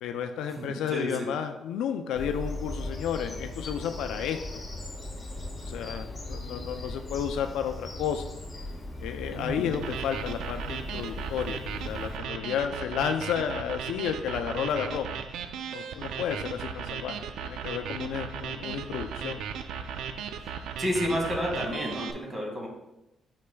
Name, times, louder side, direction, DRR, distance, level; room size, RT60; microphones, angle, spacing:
voice 1, 0.0-4.4 5.6-8.2 9.0-15.1 15.7-19.4, left 8 dB, 85° left, 6 dB, 0.4 m, -32 dB
voice 2, 0.6-1.3 9.3-9.7 20.4-20.5 20.8-22.7, equal, 25° right, -1 dB, 2.0 m, -31 dB
Bird vocalization bird call bird song, 2.1-12.2, left 1 dB, 25° left, 1.3 m, -38 dB
sound 1, 9.7-22.1, right 7 dB, 80° right, 0.4 m, -36 dB
8.3 x 5.7 x 2.3 m, 0.93 s
cardioid pair, 90°, 0 cm